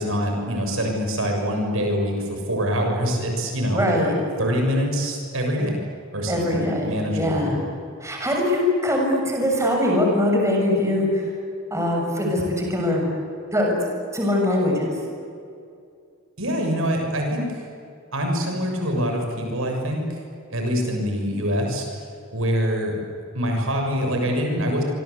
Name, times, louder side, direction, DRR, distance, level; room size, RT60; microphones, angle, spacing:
voice 1, 0.0-3.8 4.4-5.8 6.1-7.4 16.4-17.6 18.1-20.2 20.5-22.0 22.3-23.0 23.3-24.8, equal, 70° right, 2 dB, 6.9 m, -24 dB
voice 2, 3.7-4.1 6.3-7.6 8.0-11.3 11.7-13.0 13.5-13.8 14.1-14.9, left 1 dB, 15° right, 0 dB, 7.1 m, -22 dB
27.5 x 26.0 x 8.5 m, 2.5 s
head